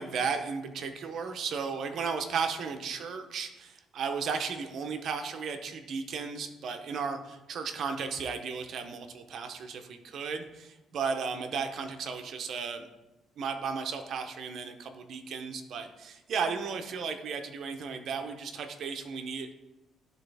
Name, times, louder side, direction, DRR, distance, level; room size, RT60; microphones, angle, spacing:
voice 1, 0.0-12.9 13.4-19.5, right 5 dB, 50° right, 7 dB, 0.7 m, -35 dB
12.0 x 4.1 x 3.4 m, 1.1 s
cardioid pair, 165°, 0 cm